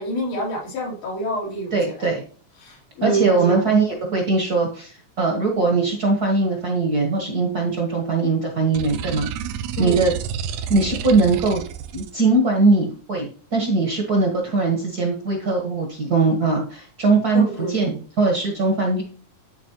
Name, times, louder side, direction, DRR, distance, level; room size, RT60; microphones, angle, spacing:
voice 1, 0.0-2.1 2.6-3.7 9.8-10.0 17.3-17.9, right 2 dB, 80° left, -4 dB, 4.0 m, -27 dB
voice 2, 1.7-2.2 3.0-9.3 9.8-10.1 10.7-11.6 11.9-19.0, right 3 dB, 50° right, 1 dB, 1.2 m, -20 dB
sound 1, 8.7-12.1, right 8 dB, 90° right, 2.2 m, -30 dB
11.5 x 4.3 x 2.9 m, 0.42 s
omnidirectional pair, 3.5 m